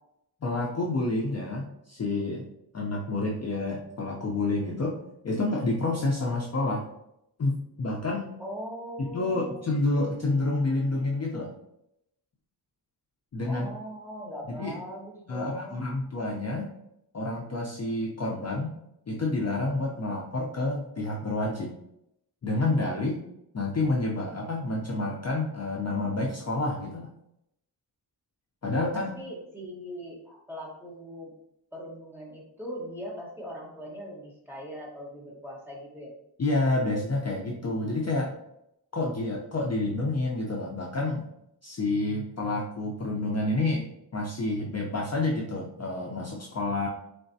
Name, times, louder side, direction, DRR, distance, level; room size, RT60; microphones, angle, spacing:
voice 1, 0.4-2.5 2.7-5.0 5.2-6.9 7.4-8.3 9.0-11.5 13.3-13.7 14.5-14.7 15.3-16.7 17.1-18.8 19.1-21.7 22.4-23.2 23.5-27.1 28.6-29.1 36.4-38.3 38.9-41.3 41.6-43.8 44.1-46.9, left 2 dB, 40° left, -2 dB, 0.5 m, -29 dB
voice 2, 8.4-9.6 13.5-15.8 28.9-31.3 31.7-36.1, equal, 5° right, -4 dB, 1.1 m, -40 dB
3.9 x 3.3 x 2.6 m, 0.81 s
wide cardioid pair, 140°, 42 cm